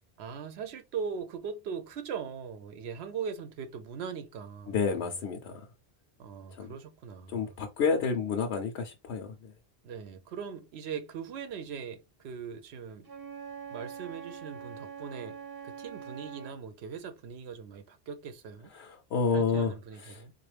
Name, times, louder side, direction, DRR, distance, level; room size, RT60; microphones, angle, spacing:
voice 1, 0.2-5.2 6.2-7.6 9.8-13.1 13.7-15.4 15.6-18.7 19.3-20.3, right 6 dB, 85° right, 0.9 m, -40 dB
voice 2, 4.7-5.6 6.6-6.7 7.3-9.5 18.8-19.7 20.1-20.2, left 5 dB, 90° left, 0.9 m, -29 dB
Wind instrument woodwind instrument, 13.0-16.6, right 7 dB, 25° right, 0.6 m, -43 dB
3.9 x 2.4 x 3.2 m
omnidirectional pair, 1.1 m